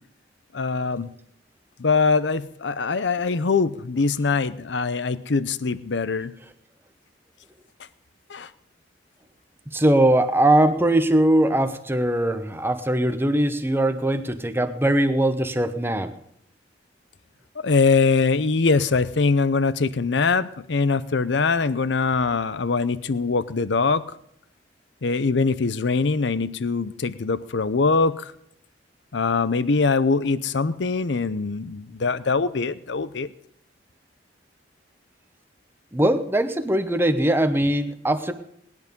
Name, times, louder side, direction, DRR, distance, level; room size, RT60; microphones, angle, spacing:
voice 1, 0.5-1.1 1.8-6.3 8.3-8.5 17.6-24.0 25.0-28.3 29.1-33.3, left 4 dB, 70° left, 15 dB, 0.7 m, -22 dB
voice 2, 9.7-16.1 35.9-38.3, right 1 dB, 10° right, 8 dB, 1.0 m, -21 dB
18.5 x 11.0 x 5.3 m, 0.70 s
head